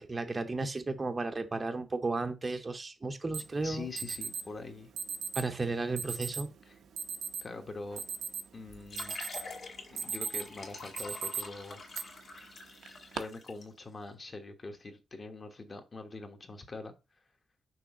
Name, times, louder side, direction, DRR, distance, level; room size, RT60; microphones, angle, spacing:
voice 1, 0.0-3.9 5.3-6.5, right 3 dB, 25° right, 0.7 m, -34 dB
Alarm, 3.3-3.4 4.0-4.4 5.0-5.4 6.0-6.4 7.0-7.4 7.8-8.6 9.0-9.5 9.8-10.5 11.0-11.4 11.9-12.0 12.8-13.2, right 6 dB, 90° right, 0.7 m, -36 dB
voice 2, 3.6-4.9 6.6-6.8 7.4-8.0 8.5-9.2 9.9-11.8 13.1-16.9, left 3 dB, 30° left, 1.2 m, -43 dB
sound 1, 8.7-13.6, left 3 dB, 45° left, 2.0 m, -46 dB
6.2 x 3.4 x 5.9 m
wide cardioid pair, 150°, 0 cm